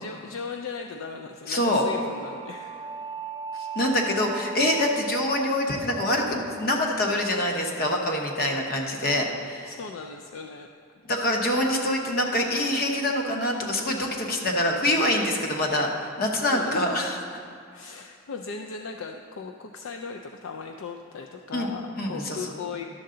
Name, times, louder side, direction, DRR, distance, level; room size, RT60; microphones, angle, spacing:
voice 1, 0.0-2.9 9.6-10.7 16.5-17.2 17.7-22.9, left 5 dB, 70° left, 3 dB, 0.4 m, -38 dB
voice 2, 1.5-1.8 3.6-9.7 11.0-17.2 21.5-22.5, left 1 dB, 50° left, 1 dB, 1.0 m, -25 dB
sound 1, 1.9-7.1, right 4 dB, 25° right, 0.3 m, -38 dB
11.5 x 6.7 x 3.8 m, 2.3 s
head